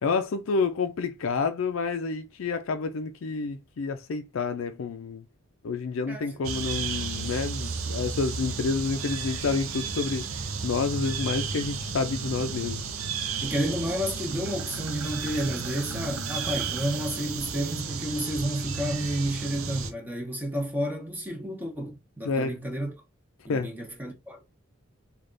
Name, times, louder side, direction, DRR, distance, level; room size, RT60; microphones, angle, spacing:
voice 1, 0.0-5.2 5.6-12.8 22.2-22.6 23.5-23.7, left 4 dB, 70° left, 0.4 m, -29 dB
voice 2, 6.1-6.4 13.4-22.9 23.4-24.4, equal, 10° right, 0.9 m, -31 dB
sound 1, 6.4-19.9, right 5 dB, 80° right, 0.6 m, -33 dB
3.4 x 2.4 x 3.8 m
head